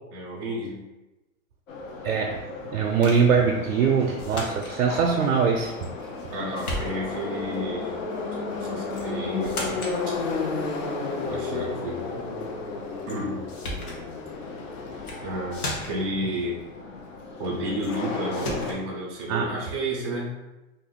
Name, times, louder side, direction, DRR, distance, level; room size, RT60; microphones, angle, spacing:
voice 1, 0.1-0.9 6.3-8.0 8.5-9.8 11.2-12.0 13.1-13.5 15.2-16.6 17.4-20.4, equal, 15° right, -5 dB, 0.4 m, -31 dB
Subway metro underground, 1.7-18.7, left 3 dB, 65° left, 0.7 m, -33 dB
voice 2, 2.0-5.9 19.3-19.5, right 6 dB, 75° right, 2 dB, 0.5 m, -23 dB
sound 1, 3.0-3.3 4.2-4.8 5.8-6.3 6.6-7.3 8.9-9.1 9.4-10.0 13.1-13.2 13.5-14.0 14.9-15.2 15.5-16.1 17.8-18.0 18.3-18.8, left 1 dB, 80° left, 1.0 m, -35 dB
2.6 x 2.4 x 3.5 m, 1.0 s
hypercardioid pair, 150°, 43 cm